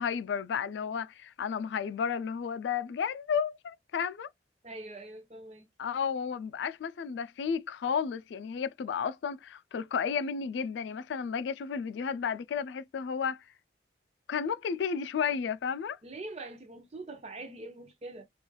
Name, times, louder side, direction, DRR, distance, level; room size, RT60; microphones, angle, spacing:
voice 1, 0.0-4.3 5.8-13.4 14.3-16.0, left 6 dB, 75° left, 0.3 m, -32 dB
voice 2, 4.6-5.7 16.0-18.3, right 2 dB, 35° right, 0.6 m, -43 dB
3.0 x 2.4 x 2.2 m
head